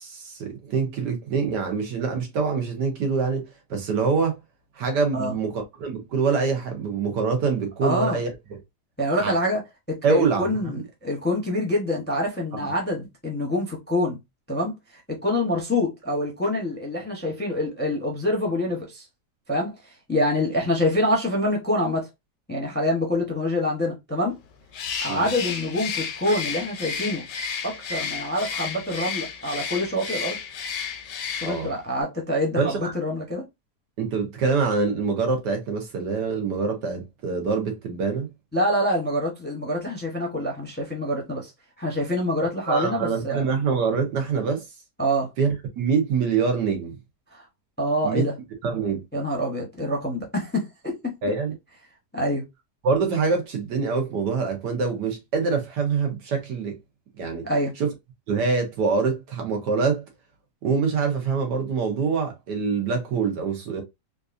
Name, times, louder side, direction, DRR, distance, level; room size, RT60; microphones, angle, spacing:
voice 1, 0.0-4.4 4.7-8.3 9.2-9.3 10.0-10.5 10.8-10.9 25.1-25.3 31.4-31.7 32.6-32.9 34.0-38.3 42.6-44.6 45.4-45.5 45.8-47.0 48.0-48.2 48.6-49.0 51.2-51.5 52.8-56.8 57.2-57.5 57.8-57.9 58.3-60.0 60.6-63.8, right 5 dB, 80° right, 1.7 m, -25 dB
voice 2, 7.8-8.2 9.0-9.6 9.9-14.2 14.5-19.0 19.5-22.1 22.5-24.4 25.0-27.2 27.6-30.4 31.4-33.4 38.5-41.5 41.8-43.4 45.0-45.3 47.3-47.4 47.8-48.3 49.1-51.1 52.1-52.4 57.4-57.7, left 1 dB, 10° left, 0.7 m, -26 dB
Bird, 24.7-31.8, left 6 dB, 85° left, 1.4 m, -32 dB
3.8 x 2.5 x 2.5 m
omnidirectional pair, 1.8 m